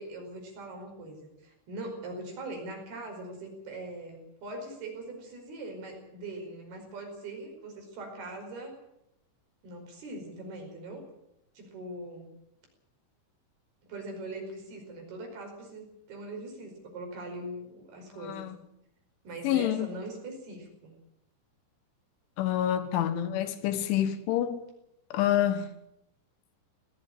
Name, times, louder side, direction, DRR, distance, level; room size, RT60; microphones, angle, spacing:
voice 1, 0.0-8.8 9.6-11.0 11.6-12.3 13.9-18.5 19.3-20.9, right 2 dB, 55° right, 7.0 m, -41 dB
voice 2, 19.4-19.9 22.4-24.6 25.1-25.7, left 11 dB, 80° left, 3.7 m, -27 dB
18.5 x 14.5 x 10.0 m
omnidirectional pair, 5.4 m